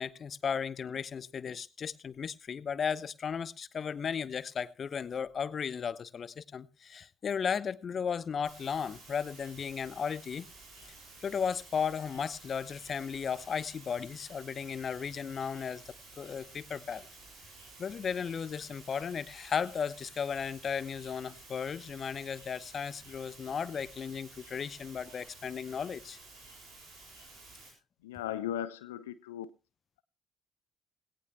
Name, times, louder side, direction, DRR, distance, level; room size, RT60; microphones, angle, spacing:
voice 1, 0.0-10.5 11.2-17.1 17.8-26.2, left 7 dB, 45° left, 19 dB, 0.8 m, -35 dB
sound 1, 8.4-27.7, right 3 dB, 70° right, 7.4 m, -53 dB
voice 2, 28.0-29.5, left 11 dB, 80° left, 15 dB, 0.6 m, -37 dB
18.0 x 18.0 x 2.2 m, 0.29 s
figure-of-eight pair, 45°, 0 cm